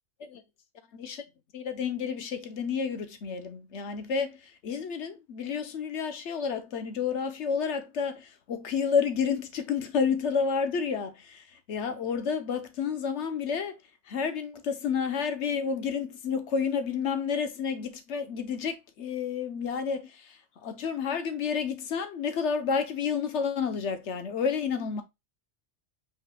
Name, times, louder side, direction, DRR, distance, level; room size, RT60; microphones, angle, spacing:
voice 1, 1.5-13.8 14.1-25.0, left 6 dB, 80° left, 1.2 m, -30 dB
5.5 x 4.0 x 2.3 m
omnidirectional pair, 1.2 m